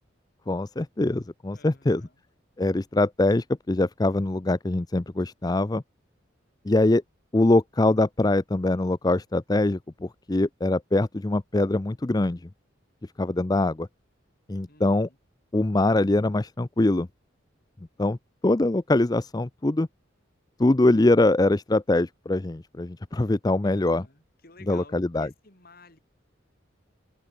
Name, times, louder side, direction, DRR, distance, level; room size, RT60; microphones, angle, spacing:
voice 1, 0.5-2.0 2.6-5.8 6.6-7.0 7.3-12.5 13.2-13.9 14.5-15.1 15.5-17.1 18.0-18.2 18.4-19.9 20.6-24.0 24.7-25.3, left 2 dB, 20° left, 0.5 m, -23 dB
voice 2, 1.5-2.2 14.6-15.2 23.6-26.0, left 3 dB, 50° left, 4.6 m, -52 dB
head